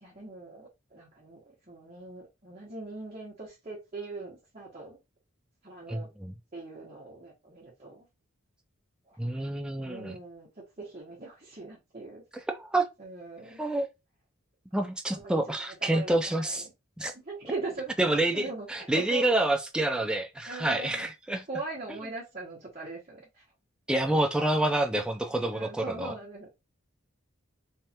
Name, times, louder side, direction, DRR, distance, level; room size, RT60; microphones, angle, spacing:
voice 1, 0.0-5.0 5.6-6.1 6.5-8.1 9.1-9.2 9.8-10.5 10.8-12.2 13.0-13.6 15.1-16.7 17.1-19.3 20.5-21.1 21.5-23.4 25.5-26.5, right 3 dB, 30° right, 1.1 m, -41 dB
voice 2, 5.9-6.3 9.2-10.2 12.5-12.9 13.6-13.9 14.7-16.6 17.0-17.1 18.0-21.4 23.9-26.1, right 1 dB, 5° right, 0.3 m, -28 dB
3.4 x 3.1 x 2.8 m
head